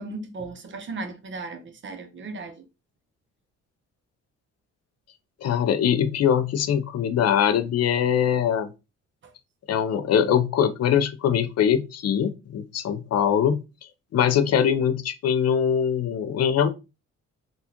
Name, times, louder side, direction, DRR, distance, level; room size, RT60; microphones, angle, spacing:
voice 1, 0.0-2.6, right 3 dB, 40° right, 0.8 m, -36 dB
voice 2, 5.4-8.7 9.7-13.6 14.1-16.7, left 8 dB, 55° left, 0.5 m, -22 dB
3.5 x 2.4 x 2.9 m
cardioid pair, 90°, 30 cm